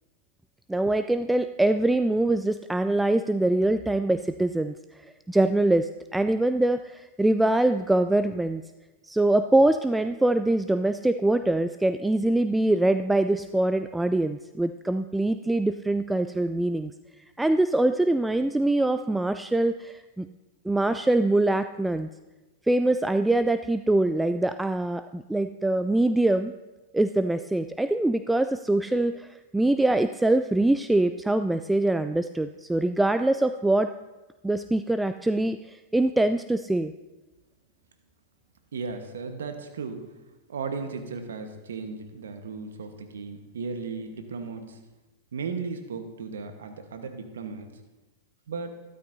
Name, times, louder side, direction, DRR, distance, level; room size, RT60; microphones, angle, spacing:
voice 1, 0.7-4.7 5.3-8.6 9.1-16.9 17.4-20.3 20.7-22.1 22.7-26.5 26.9-33.9 34.4-36.9, right 2 dB, 5° right, 10 dB, 0.3 m, -24 dB
voice 2, 38.7-40.0 40.5-44.8 45.3-47.7 48.5-48.8, right 4 dB, 75° right, 6 dB, 1.2 m, -35 dB
13.0 x 12.5 x 2.7 m, 1.1 s
hypercardioid pair, 100°, 0 cm